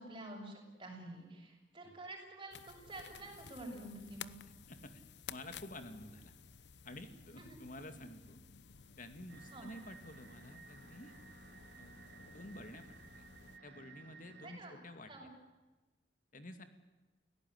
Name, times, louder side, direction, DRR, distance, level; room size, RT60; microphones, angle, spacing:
voice 1, 0.0-4.4 7.3-7.6 7.9-8.0 9.5-9.8 14.4-14.8 15.1-15.3, right 1 dB, 30° right, 1 dB, 7.1 m, -49 dB
sound 1, 2.5-13.6, left 7 dB, 75° left, 0.8 m, -55 dB
voice 2, 4.7-5.0 5.3-6.3 6.8-8.4 9.0-11.1 11.8-11.9 12.3-12.9 13.1-13.2 13.6-15.1 16.3-16.6, left 1 dB, 50° left, 8 dB, 2.4 m, -50 dB
sound 2, 9.3-14.6, right 3 dB, 65° right, 3.7 m, -57 dB
29.5 x 17.5 x 9.5 m, 1.2 s
head